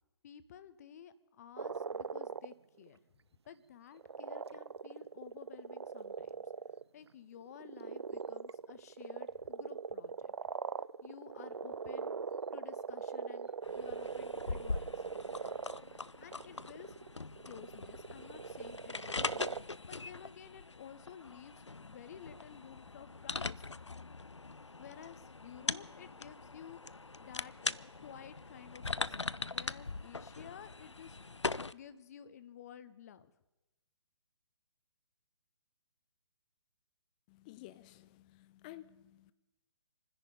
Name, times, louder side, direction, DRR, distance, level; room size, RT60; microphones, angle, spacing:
voice 1, 0.2-3.0 3.5-6.4 6.9-10.3 11.0-12.2 12.5-15.0 16.2-17.0 17.4-19.5 19.9-23.8 24.8-31.2 31.7-33.3, left 9 dB, 35° left, 0.8 m, -53 dB
sound 1, 1.6-2.5 2.9-3.0 4.0-6.8 7.4-19.6, right 5 dB, 65° right, 0.4 m, -41 dB
sound 2, 13.6-31.7, left 3 dB, 85° left, 0.4 m, -42 dB
voice 2, 37.3-39.3, left 15 dB, 15° left, 0.5 m, -53 dB
26.0 x 10.5 x 5.2 m
figure-of-eight pair, 135°, 15 cm